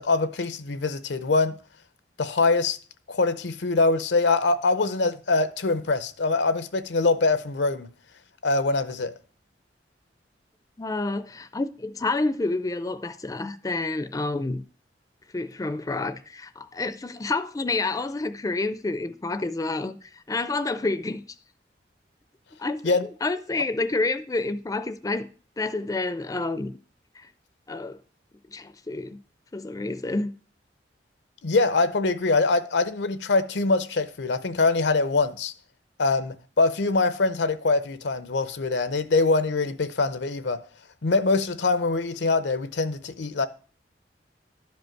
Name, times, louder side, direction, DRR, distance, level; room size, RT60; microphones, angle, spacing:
voice 1, 0.0-1.6 2.2-2.8 3.1-7.9 8.4-9.1 22.8-23.1 31.4-35.5 36.0-40.6 41.0-43.5, left 3 dB, 80° left, 0.7 m, -23 dB
voice 2, 10.8-14.6 15.3-21.2 22.6-22.9 23.2-25.3 25.6-26.8 27.2-27.3 27.7-28.0 28.5-29.2 29.5-30.3, left 3 dB, 20° left, 0.4 m, -29 dB
12.0 x 5.2 x 4.5 m
head